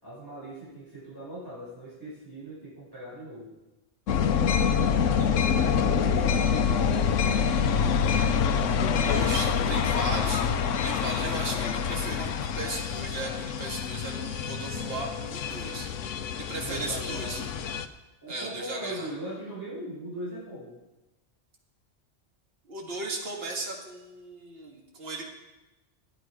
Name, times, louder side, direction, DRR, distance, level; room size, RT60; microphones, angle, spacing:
voice 1, 0.0-3.5 5.0-7.7 8.5-9.8 16.5-17.4 18.2-20.8, right 1 dB, 15° right, -9 dB, 5.2 m, -40 dB
sound 1, 4.1-17.9, left 7 dB, 90° left, 1.0 m, -26 dB
voice 2, 9.0-15.9 16.3-17.4 18.3-19.1 22.7-25.2, right 2 dB, 55° right, -1 dB, 2.0 m, -36 dB
11.5 x 10.5 x 4.8 m, 1.0 s
omnidirectional pair, 1.3 m